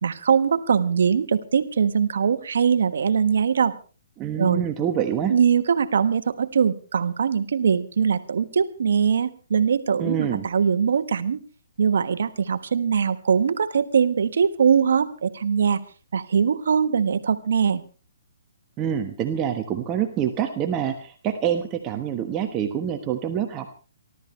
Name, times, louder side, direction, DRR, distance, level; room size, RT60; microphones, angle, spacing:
voice 1, 0.0-3.8 4.4-4.6 5.3-11.4 11.8-15.8 16.1-17.8, right 6 dB, 70° right, 10 dB, 1.3 m, -21 dB
voice 2, 4.2-5.3 10.0-10.5 18.8-23.7, right 9 dB, 20° right, 5 dB, 1.3 m, -26 dB
29.0 x 13.0 x 3.3 m, 0.35 s
hypercardioid pair, 155°, 0 cm